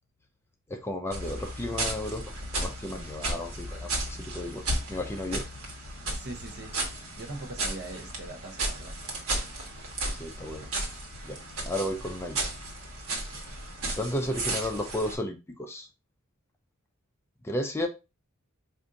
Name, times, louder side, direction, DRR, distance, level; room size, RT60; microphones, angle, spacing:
voice 1, 0.7-2.2 2.5-5.4 10.1-10.7 11.2-11.4 11.7-12.4 13.4-13.5 14.0-15.9 17.4-17.9, left 1 dB, 10° left, 0.5 m, -33 dB
sound 1, 1.1-15.2, right 2 dB, 75° right, 1.2 m, -34 dB
voice 2, 6.1-6.7 7.2-9.0, right 2 dB, 50° right, 0.8 m, -41 dB
4.9 x 2.6 x 2.6 m
head